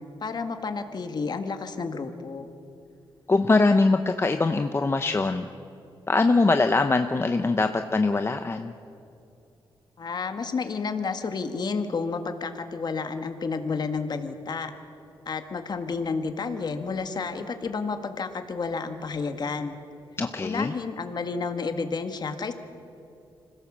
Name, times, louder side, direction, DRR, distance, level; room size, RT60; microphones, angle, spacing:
voice 1, 0.2-2.5 10.0-14.7 15.2-19.8 20.4-22.5, left 4 dB, 50° left, 7 dB, 1.7 m, -31 dB
voice 2, 3.3-5.5 6.1-8.7 20.2-20.7, left 3 dB, 25° left, 7 dB, 0.8 m, -22 dB
25.5 x 16.5 x 7.4 m, 2.7 s
cardioid pair, 100°, 9 cm